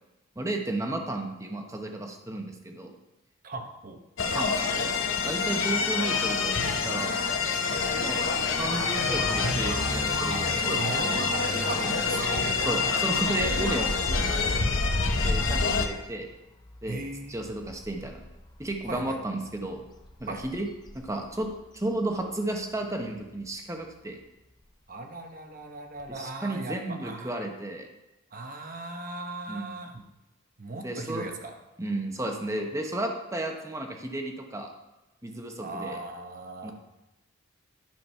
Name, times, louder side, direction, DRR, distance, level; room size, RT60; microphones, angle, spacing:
voice 1, 0.4-2.9 4.3-4.6 5.1-6.5 6.8-7.2 8.0-8.2 8.6-10.6 11.8-12.0 12.6-14.6 15.2-16.3 16.8-17.0 17.3-18.2 18.6-19.8 20.2-20.7 20.9-21.5 21.7-24.2 26.1-27.9 29.5-29.8 30.8-31.4 31.8-34.7 35.2-36.0 36.6-36.7, right 1 dB, 15° right, 3 dB, 1.0 m, -33 dB
voice 2, 3.4-4.0 10.6-12.4 16.9-17.4 18.9-19.2 20.3-20.4 24.9-27.4 28.3-30.0 30.6-31.6 35.6-36.7, right 2 dB, 45° right, 4 dB, 1.0 m, -37 dB
sound 1, 4.2-15.9, left 4 dB, 70° left, 0.9 m, -27 dB
Alarm, 7.4-13.9, right 2 dB, 85° right, 1.9 m, -38 dB
Motor vehicle (road) / Accelerating revving vroom, 7.8-22.6 22.9-23.3 23.8-23.9 24.2-24.3 24.6-24.7 26.0-26.1, left 1 dB, 20° left, 0.6 m, -42 dB
10.5 x 5.2 x 5.6 m, 0.98 s
head